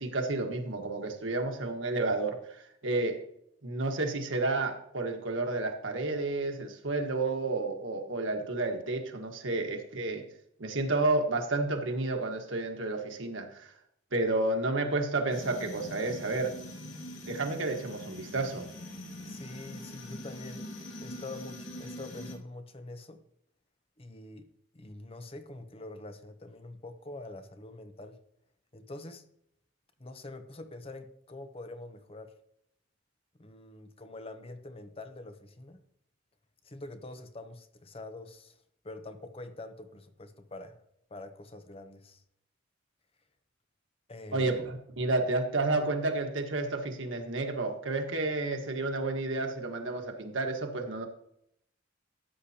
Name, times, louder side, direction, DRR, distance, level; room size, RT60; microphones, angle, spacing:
voice 1, 0.0-2.4 2.8-3.2 3.6-10.2 10.6-13.7 14.1-16.5 17.2-18.6 44.3-51.1, right 2 dB, 85° right, 4 dB, 1.4 m, -31 dB
sound 1, 15.3-22.4, left 1 dB, 85° left, 2.0 m, -43 dB
voice 2, 19.3-20.7 21.0-23.2 24.0-24.5 24.7-28.2 28.7-29.2 30.0-32.3 33.4-35.8 36.6-38.6 38.8-40.8 41.1-42.2 44.1-44.5, left 2 dB, 30° left, 8 dB, 0.8 m, -45 dB
13.0 x 8.2 x 2.8 m, 0.72 s
head